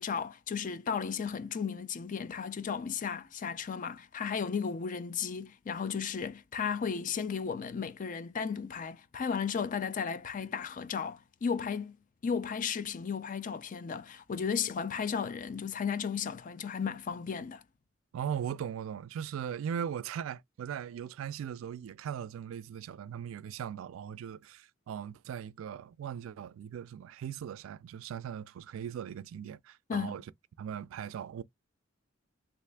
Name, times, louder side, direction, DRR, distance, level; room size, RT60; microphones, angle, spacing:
voice 1, 0.0-12.0 12.2-17.6 29.9-30.2, left 6 dB, 40° left, 0.4 m, -34 dB
voice 2, 18.1-30.2 30.6-31.4, right 8 dB, 85° right, 0.3 m, -39 dB
3.3 x 2.5 x 3.3 m
head